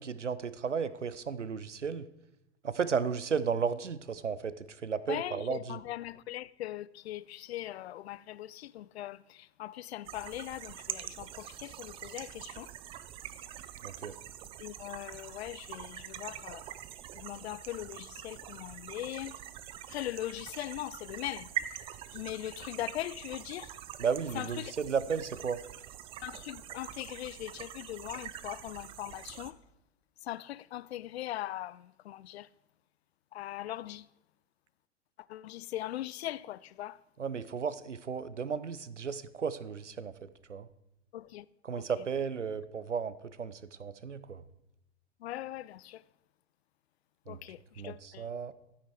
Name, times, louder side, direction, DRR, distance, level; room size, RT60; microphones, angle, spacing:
voice 1, 0.0-2.1 2.6-5.8 13.8-14.2 24.0-25.6 37.2-40.7 41.6-44.4 47.3-47.4 47.8-48.5, right 6 dB, 85° right, 0.6 m, -34 dB
voice 2, 5.1-9.2 9.6-12.7 14.6-16.6 17.2-19.3 19.9-21.5 22.1-23.7 24.4-24.7 26.2-29.5 30.3-32.5 33.3-34.0 35.3-37.0 41.1-41.4 45.2-46.0 47.3-47.6 47.8-48.2, left 14 dB, 65° left, 0.5 m, -40 dB
sound 1, 10.0-29.5, right 11 dB, 15° right, 0.4 m, -44 dB
12.5 x 8.6 x 4.6 m
figure-of-eight pair, 90°, 35 cm